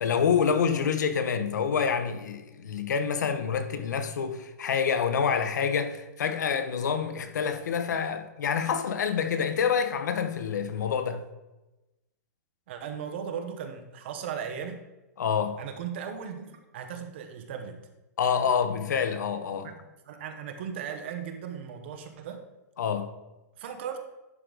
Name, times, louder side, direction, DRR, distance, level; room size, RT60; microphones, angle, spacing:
voice 1, 0.0-11.2 15.2-15.6 18.2-19.7 22.8-23.1, left 6 dB, 85° left, 1.0 m, -27 dB
voice 2, 12.7-14.8 15.6-17.8 19.6-22.4 23.6-24.0, right 7 dB, 40° right, 1.0 m, -37 dB
11.0 x 3.9 x 4.9 m
hypercardioid pair, 175°, 9 cm